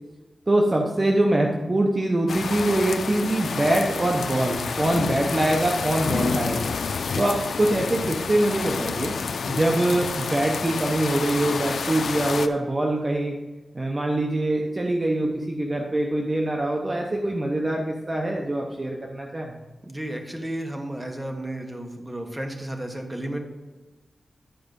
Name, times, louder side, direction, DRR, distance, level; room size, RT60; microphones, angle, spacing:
voice 1, 0.5-6.7 7.2-9.1 9.5-13.4 13.7-19.6, right 1 dB, 30° right, 0 dB, 0.8 m, -24 dB
sound 1, 2.3-12.5, left 5 dB, 85° left, 0.4 m, -29 dB
voice 2, 19.8-23.4, right 1 dB, 10° right, 3 dB, 1.2 m, -33 dB
10.5 x 4.8 x 5.3 m, 1.2 s
wide cardioid pair, 120°, 0 cm